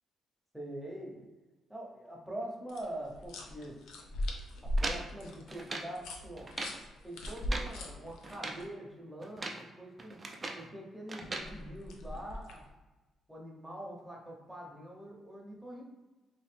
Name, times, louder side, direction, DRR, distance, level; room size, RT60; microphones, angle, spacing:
voice 1, 0.5-1.3 1.7-3.8 4.6-6.5 7.0-10.2 10.5-12.7 13.3-15.8, right 1 dB, 5° right, -2 dB, 0.8 m, -44 dB
sound 1, 2.7-8.6 11.2-12.7, equal, 85° left, 0.5 m, -39 dB
sound 2, 4.8-6.0 6.4-6.8 7.3-7.8 8.2-8.7 9.2-9.7 10.0-10.7 11.1-11.5, right 2 dB, 30° right, 0.5 m, -40 dB
2.9 x 2.6 x 3.3 m, 1.2 s
cardioid pair, 90°, 0 cm